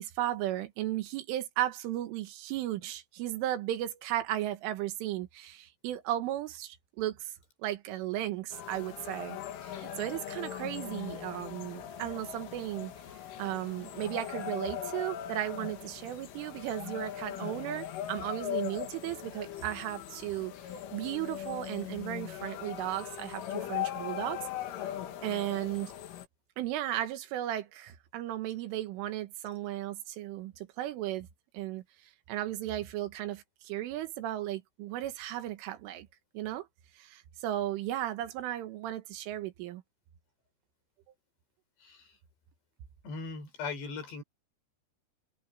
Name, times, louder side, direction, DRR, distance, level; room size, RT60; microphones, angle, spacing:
voice 1, 0.0-7.3 7.6-12.9 13.4-20.5 20.9-24.5 25.2-25.9 26.6-31.3 31.5-31.8 32.3-36.1 36.3-36.7 37.0-39.8, right 13 dB, 90° right, 4.0 m, -35 dB
sound 1, 8.5-26.3, left 11 dB, 80° left, 4.6 m, -40 dB
voice 2, 41.8-42.1 43.0-44.2, left 4 dB, 60° left, 7.4 m, -39 dB
omnidirectional pair, 5.5 m